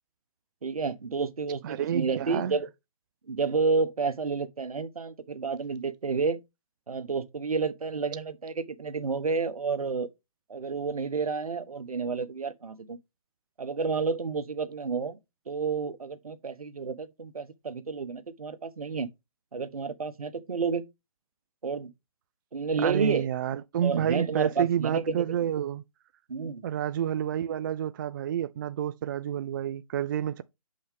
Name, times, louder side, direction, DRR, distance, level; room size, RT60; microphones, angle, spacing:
voice 1, 0.6-2.7 3.3-6.4 6.9-10.1 10.5-13.0 13.6-15.2 15.5-19.1 19.5-20.8 21.6-21.9 22.5-23.3 23.8-25.4 26.3-26.6, right 4 dB, 85° right, 1.0 m, -30 dB
voice 2, 1.6-2.6 22.8-25.8 26.6-30.4, right 10 dB, 35° right, 0.4 m, -29 dB
7.5 x 5.5 x 3.4 m
hypercardioid pair, 140°, 18 cm